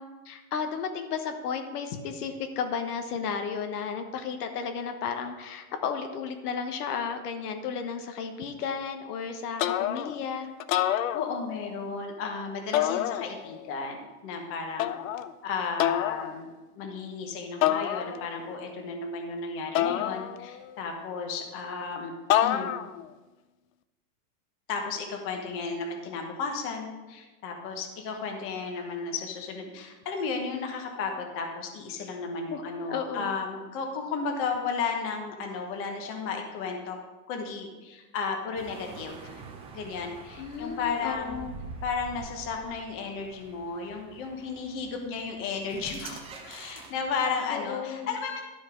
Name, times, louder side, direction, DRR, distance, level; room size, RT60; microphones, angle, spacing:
voice 1, 0.0-10.5 32.5-32.6 32.9-33.3 40.4-41.5 47.5-48.1, left 6 dB, 80° left, 6 dB, 1.3 m, -33 dB
sound 1, 9.6-10.2 10.6-11.7 12.7-13.6 14.8-15.3 15.8-16.3 17.6-18.4 19.7-20.7 22.3-23.0, left 12 dB, 60° left, 0.6 m, -27 dB
voice 2, 11.1-14.9 15.4-16.5 16.7-22.1 22.4-22.8 24.7-37.0 37.3-39.4 39.7-41.5 41.8-48.4, left 5 dB, 30° left, 3 dB, 1.1 m, -34 dB
sound 2, 38.5-47.4, right 4 dB, 15° right, 0.6 m, -46 dB
12.0 x 5.4 x 5.1 m, 1.2 s
supercardioid pair, 160°, 45 cm